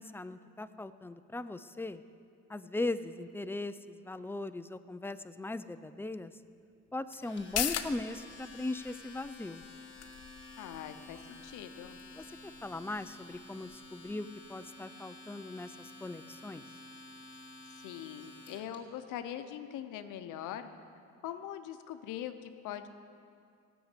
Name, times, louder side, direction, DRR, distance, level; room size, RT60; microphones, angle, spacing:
voice 1, 0.0-2.0 2.5-6.3 6.9-9.6 12.2-16.6, left 2 dB, 10° left, 12 dB, 0.4 m, -39 dB
Domestic sounds home sounds, 7.1-18.8, left 2 dB, 40° left, 2.8 m, -51 dB
sound 1, 7.4-14.5 14.8-14.9, left 9 dB, 55° left, 0.7 m, -42 dB
voice 2, 10.6-12.0 17.8-20.7 21.2-22.9, left 10 dB, 90° left, 9 dB, 0.8 m, -42 dB
15.0 x 6.3 x 8.2 m, 2.4 s
cardioid pair, 90°, 30 cm